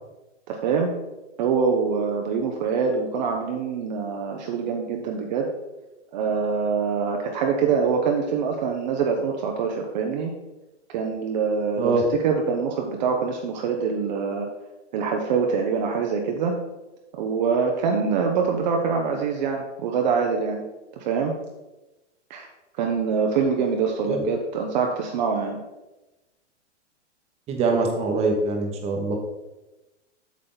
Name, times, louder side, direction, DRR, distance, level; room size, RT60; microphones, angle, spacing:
voice 1, 0.5-0.9 1.4-5.5 6.1-10.3 10.9-14.5 14.9-16.6 17.1-20.7 21.0-21.3 22.3-22.5 22.8-25.6, right 5 dB, 40° right, 2 dB, 0.9 m, -24 dB
voice 2, 27.5-29.1, right 3 dB, 15° right, 2 dB, 1.1 m, -23 dB
8.2 x 6.2 x 4.0 m, 1.0 s
hypercardioid pair, 150°, 36 cm